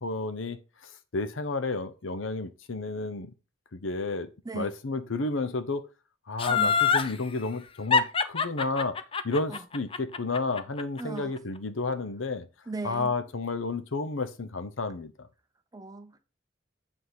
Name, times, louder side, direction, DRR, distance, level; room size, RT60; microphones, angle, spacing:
voice 1, 0.0-3.3 3.7-5.8 6.3-9.0 9.2-12.5 12.8-15.3, left 3 dB, 90° left, 0.8 m, -31 dB
Laughter, 6.4-7.1 7.9-11.0 11.4-11.5, left 5 dB, 30° left, 0.5 m, -24 dB
voice 2, 11.0-11.3 12.7-13.1 15.7-16.2, right 3 dB, 20° right, 0.7 m, -37 dB
8.1 x 3.7 x 4.8 m
head